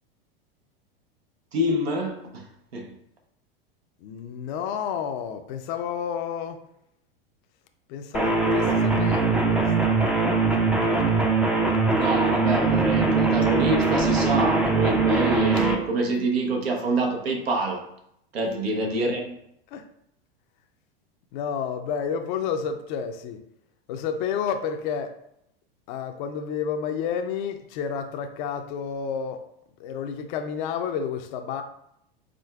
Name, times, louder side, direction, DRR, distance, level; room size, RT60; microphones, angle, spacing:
voice 1, 1.5-2.5 2.7-2.9 11.9-17.8 18.3-19.3, right 2 dB, 90° right, 0.9 m, -26 dB
voice 2, 4.0-6.6 7.9-10.0 18.4-18.5 19.7-19.9 21.3-23.4 23.9-25.2 25.9-29.4 29.8-31.6, left 7 dB, 55° left, 0.5 m, -30 dB
sound 1, 8.1-15.8, right 3 dB, 5° right, 0.4 m, -21 dB
5.0 x 3.6 x 2.3 m
hypercardioid pair, 105°, 30 cm